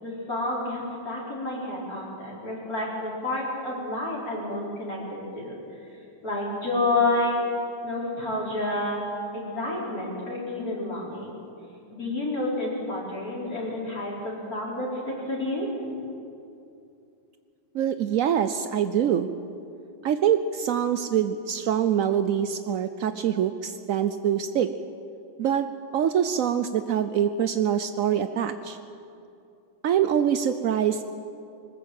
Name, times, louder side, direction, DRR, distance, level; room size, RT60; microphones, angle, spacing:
voice 1, 0.0-5.6 6.2-7.4 7.8-9.0 9.3-11.3 11.9-15.7, left 2 dB, 45° left, -5 dB, 4.8 m, -29 dB
voice 2, 17.7-19.3 20.0-24.7 25.4-28.8 29.8-31.0, right 9 dB, 75° right, 10 dB, 0.7 m, -24 dB
21.0 x 19.5 x 7.7 m, 2.6 s
omnidirectional pair, 2.2 m